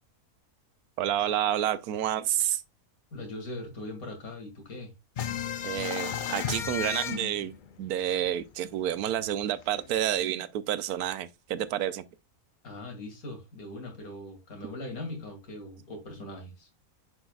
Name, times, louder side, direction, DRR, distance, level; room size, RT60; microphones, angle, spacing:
voice 1, 1.0-2.6 5.6-7.5 7.8-12.0, right 11 dB, 85° right, 1.1 m, -29 dB
voice 2, 3.1-4.9 12.6-16.7, left 1 dB, 70° left, 2.7 m, -40 dB
sound 1, 5.2-8.5 8.8-8.9 9.2-10.2, left 8 dB, 90° left, 0.4 m, -34 dB
10.0 x 4.9 x 2.3 m
omnidirectional pair, 1.6 m